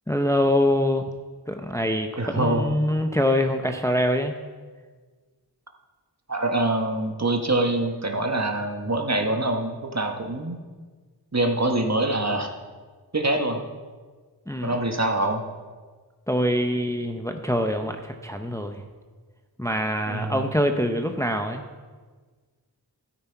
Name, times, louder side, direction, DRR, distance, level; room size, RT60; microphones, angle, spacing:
voice 1, 0.1-1.1 1.5-4.4 14.5-14.8 16.3-18.8 19.6-21.6, left 1 dB, 5° left, 5 dB, 0.7 m, -24 dB
voice 2, 2.2-2.8 6.3-10.6 11.3-12.5 13.1-13.6 14.6-15.4 20.1-20.5, right 2 dB, 40° right, 3 dB, 1.3 m, -25 dB
13.0 x 9.4 x 4.5 m, 1.4 s
wide cardioid pair, 45°, 41 cm